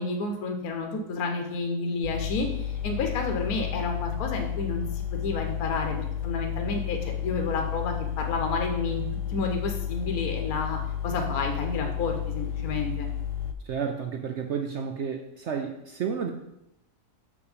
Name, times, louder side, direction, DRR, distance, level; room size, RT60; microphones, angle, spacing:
voice 1, 0.0-9.0 9.3-10.8 11.0-13.1, left 3 dB, 65° left, 3 dB, 1.3 m, -30 dB
sound 1, 2.0-13.5, left 9 dB, 85° left, 1.3 m, -32 dB
voice 2, 13.7-16.3, right 7 dB, 75° right, 4 dB, 0.6 m, -31 dB
6.6 x 5.3 x 5.0 m, 0.85 s
omnidirectional pair, 1.8 m